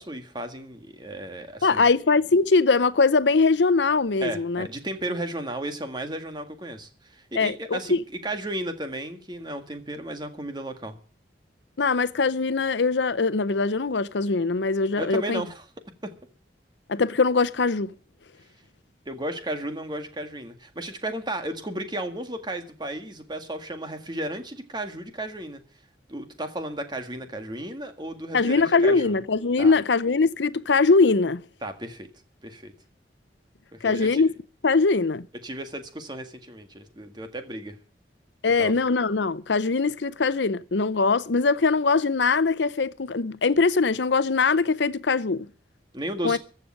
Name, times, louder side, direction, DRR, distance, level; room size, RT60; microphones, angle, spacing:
voice 1, 0.0-1.8 4.2-10.9 15.0-15.6 16.0-16.1 19.1-25.6 26.1-29.2 29.6-29.8 31.6-32.1 32.4-32.7 33.7-34.2 35.4-37.8 38.6-38.7 45.9-46.4, right 1 dB, 25° right, 1.8 m, -34 dB
voice 2, 1.6-4.7 7.4-8.0 11.8-15.4 16.9-17.9 28.3-31.4 33.8-34.3 34.6-35.3 38.4-45.5 46.2-46.4, left 4 dB, 85° left, 0.7 m, -22 dB
15.0 x 6.8 x 8.9 m
head